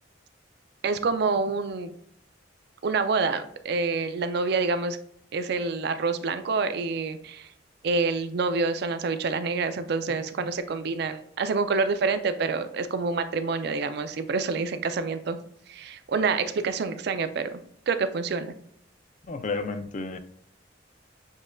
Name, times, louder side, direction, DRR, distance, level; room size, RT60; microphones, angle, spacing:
voice 1, 0.8-1.9 2.8-5.0 5.3-7.5 7.8-15.4 15.7-17.6 17.9-18.5, right 4 dB, 60° right, 10 dB, 0.4 m, -27 dB
voice 2, 19.3-20.2, left 3 dB, 40° left, 9 dB, 0.4 m, -31 dB
7.0 x 2.5 x 2.3 m, 0.70 s
head